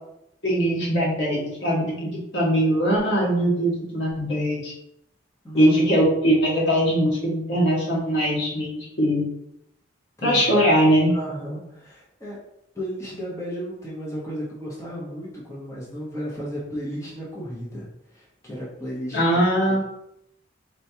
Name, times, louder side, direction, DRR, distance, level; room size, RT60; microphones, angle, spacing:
voice 1, 0.4-4.7 5.5-9.2 10.2-11.1 19.1-19.8, equal, 65° left, -5 dB, 1.5 m, -21 dB
voice 2, 10.2-10.6 11.1-12.4 12.7-19.2 19.7-19.8, equal, 15° left, -7 dB, 0.9 m, -34 dB
4.4 x 3.1 x 2.8 m, 0.81 s
head